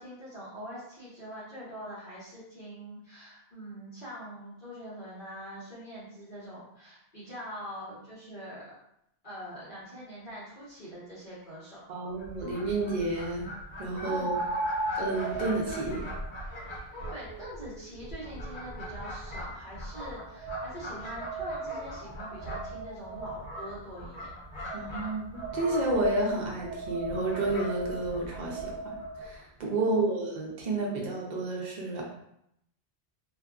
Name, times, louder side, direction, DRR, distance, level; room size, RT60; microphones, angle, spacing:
voice 1, 0.0-8.7 9.2-11.8 14.0-14.4 17.1-24.3 29.8-30.2, equal, 50° left, -11 dB, 1.1 m, -44 dB
sound 1, 11.4-11.5 14.0-19.2 19.9-23.6 24.7-29.3, right 2 dB, 80° right, 0.9 m, -38 dB
voice 2, 11.9-13.5 13.8-14.4 15.0-16.0 24.7-32.0, right 2 dB, 50° right, -2 dB, 0.7 m, -30 dB
Fowl, 12.1-29.4, equal, 85° left, 1.2 m, -42 dB
2.7 x 2.4 x 2.3 m, 0.77 s
omnidirectional pair, 1.1 m